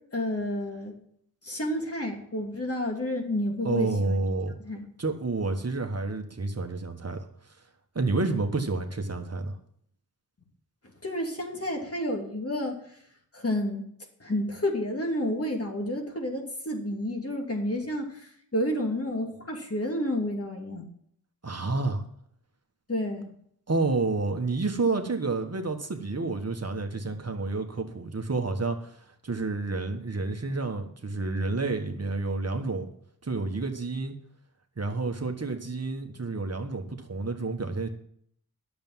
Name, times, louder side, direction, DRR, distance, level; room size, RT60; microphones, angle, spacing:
voice 1, 0.1-1.0 1.4-4.2 4.6-4.8 11.0-12.8 13.3-13.8 14.2-20.9 22.9-23.3, left 1 dB, 40° left, 1 dB, 2.8 m, -30 dB
voice 2, 3.6-4.6 5.0-7.6 7.9-9.6 21.4-22.0 23.7-32.9 33.2-34.1 34.8-37.9, right 3 dB, 45° right, 5 dB, 1.5 m, -29 dB
10.5 x 7.1 x 7.5 m, 0.66 s
wide cardioid pair, 70°, 36 cm